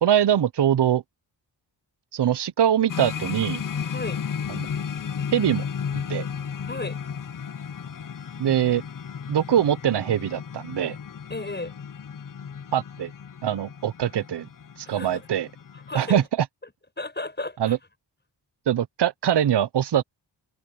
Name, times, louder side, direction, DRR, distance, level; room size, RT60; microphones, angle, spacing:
voice 1, 0.0-1.0 2.1-3.6 4.5-4.7 5.3-5.7 6.1-6.3 8.4-8.8 9.3-11.0 12.7-13.1 13.4-14.5 14.8-15.5 15.9-16.5 17.6-17.8 18.7-20.0, right 10 dB, 65° right, 0.7 m, -23 dB
sound 1, 2.9-16.3, left 7 dB, 45° left, 0.7 m, -34 dB
voice 2, 6.7-7.0 11.3-11.7 14.8-15.2 15.7-16.2 17.0-17.8, left 2 dB, 25° left, 6.1 m, -34 dB
wide cardioid pair, 130°, 44 cm